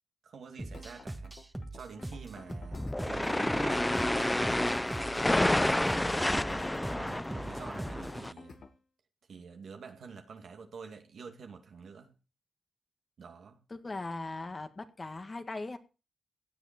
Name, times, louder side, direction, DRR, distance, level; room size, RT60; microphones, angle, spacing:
voice 1, 0.2-1.3 1.7-4.0 5.8-8.7 9.3-12.1 13.2-13.6, right 5 dB, 80° right, 2.4 m, -48 dB
sound 1, 0.6-8.2, right 1 dB, 10° right, 1.8 m, -42 dB
sound 2, 0.7-8.8, left 4 dB, 70° left, 1.9 m, -52 dB
sound 3, 2.7-8.3, left 1 dB, 15° left, 0.6 m, -29 dB
voice 2, 5.3-5.7 13.7-15.8, left 3 dB, 35° left, 1.8 m, -38 dB
17.0 x 9.8 x 4.5 m
cardioid pair, 60°, 0 cm